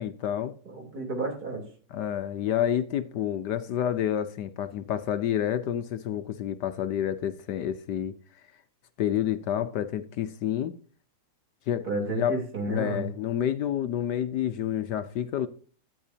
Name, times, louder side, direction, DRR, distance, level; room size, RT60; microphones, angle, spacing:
voice 1, 0.0-0.5 1.9-8.1 9.0-10.7 11.7-12.4 12.7-15.5, left 10 dB, 70° left, 1.2 m, -29 dB
voice 2, 0.6-1.6 11.8-13.1, right 2 dB, 50° right, 3.9 m, -31 dB
13.5 x 10.0 x 2.8 m
omnidirectional pair, 2.1 m